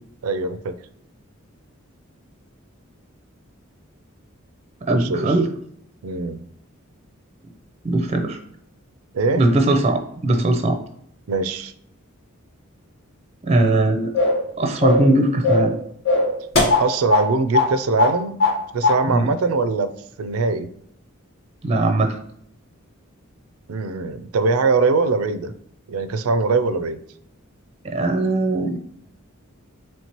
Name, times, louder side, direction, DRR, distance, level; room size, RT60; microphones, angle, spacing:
voice 1, 0.2-0.8 4.9-5.3 6.0-6.4 9.1-9.5 11.3-11.7 16.8-18.4 18.7-20.7 23.7-25.5 25.9-27.0, right 3 dB, 85° right, 12 dB, 0.4 m, -22 dB
voice 2, 4.8-5.5 7.8-8.4 9.3-10.8 13.4-14.1 14.6-15.8 19.0-19.3 21.6-22.2 27.8-28.8, right 2 dB, 30° right, 5 dB, 0.5 m, -20 dB
sound 1, 14.1-14.5 14.8-15.1 15.4-15.7 16.1-17.3 17.5-17.7 18.0-18.6 18.8-19.0, left 3 dB, 75° left, 1.3 m, -18 dB
4.4 x 3.2 x 2.9 m, 0.69 s
head